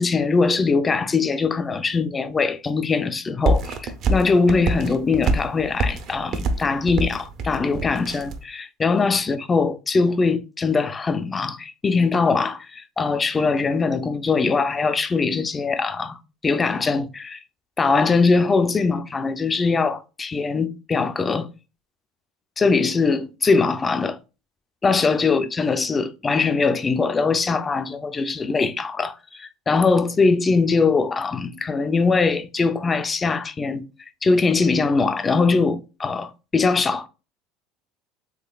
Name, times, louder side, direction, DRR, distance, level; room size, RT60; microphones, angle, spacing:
voice 1, 0.0-17.4 17.8-21.5 22.6-24.2 24.8-33.8 34.2-37.1, left 4 dB, 20° left, 0.4 m, -21 dB
sound 1, 3.4-8.4, right 2 dB, 50° right, 0.6 m, -25 dB
3.7 x 3.1 x 2.3 m
supercardioid pair, 120°, 0 cm